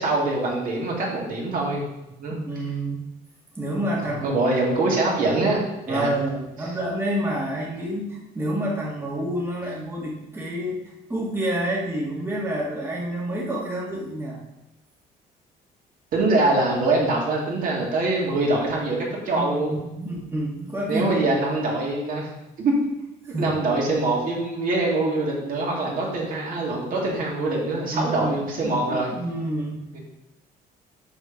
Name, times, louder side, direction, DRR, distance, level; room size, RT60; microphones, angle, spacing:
voice 1, 0.0-1.8 2.2-2.5 4.2-5.6 5.9-6.1 16.1-19.7 20.9-22.3 22.6-22.7 23.4-29.1 29.9-30.0, right 2 dB, 55° right, -2 dB, 2.4 m, -24 dB
voice 2, 2.3-3.0 3.5-4.6 5.9-14.4 19.3-21.3 23.2-23.5 27.9-28.3 28.6-29.9, right 1 dB, 15° right, -4 dB, 1.7 m, -28 dB
6.1 x 5.4 x 5.2 m, 0.95 s
cardioid pair, 110°, 17 cm